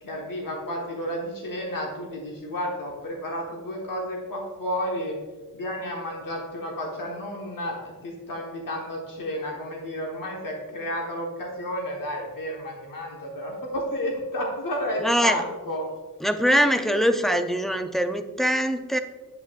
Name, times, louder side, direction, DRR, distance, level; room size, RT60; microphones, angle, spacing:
voice 1, 0.0-5.2 5.5-15.9, equal, 80° left, -1 dB, 1.2 m, -31 dB
voice 2, 15.0-15.4 16.2-19.0, equal, ahead, 6 dB, 0.4 m, -22 dB
8.0 x 8.0 x 2.4 m, 1.3 s
wide cardioid pair, 125°, 33 cm